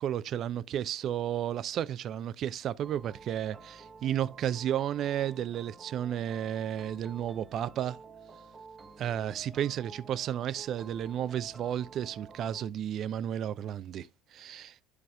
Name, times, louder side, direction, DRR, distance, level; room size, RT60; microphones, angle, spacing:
voice 1, 0.0-8.0 9.0-14.7, right 10 dB, 50° right, 0.4 m, -33 dB
sound 1, 2.8-12.7, right 4 dB, 25° right, 1.0 m, -51 dB
11.5 x 4.8 x 2.3 m
figure-of-eight pair, 60°, 0 cm